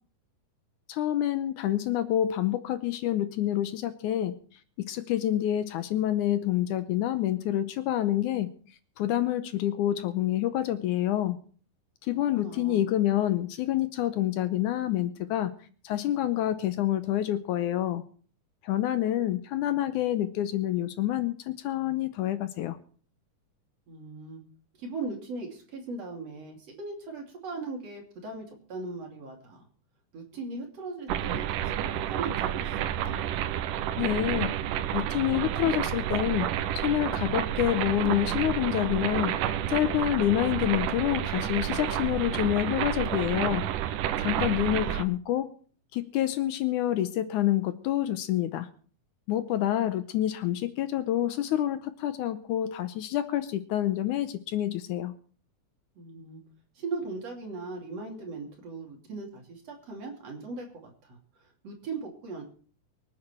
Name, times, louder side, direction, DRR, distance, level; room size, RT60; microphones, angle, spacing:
voice 1, 0.9-4.3 4.8-8.5 9.0-11.4 12.0-15.5 15.8-18.0 18.6-22.8 34.0-34.5 34.9-36.5 36.8-39.3 39.7-43.7 44.2-45.5 45.9-48.7 49.3-55.1, left 12 dB, 75° left, 11 dB, 2.1 m, -27 dB
voice 2, 12.1-12.8 23.9-24.4 24.8-29.7 30.1-33.2 44.7-45.0 56.0-56.4 56.8-61.2 61.6-62.4, right 3 dB, 50° right, 1 dB, 3.7 m, -39 dB
sound 1, 31.1-45.0, right 11 dB, 80° right, 2.4 m, -30 dB
24.0 x 8.9 x 4.4 m, 0.43 s
omnidirectional pair, 3.8 m